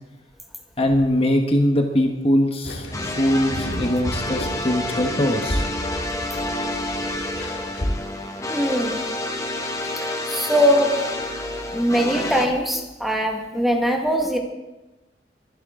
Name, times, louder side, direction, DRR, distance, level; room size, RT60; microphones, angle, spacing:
voice 1, 0.8-5.6, left 1 dB, 35° left, 3 dB, 1.3 m, -21 dB
sound 1, 2.6-7.9, equal, 85° left, 2.3 m, -32 dB
sound 2, 2.9-12.5, left 1 dB, 20° left, 1.6 m, -29 dB
voice 2, 8.5-9.1 10.3-11.0 11.7-14.4, equal, ahead, 1 dB, 1.8 m, -21 dB
22.5 x 11.0 x 3.8 m, 1.1 s
head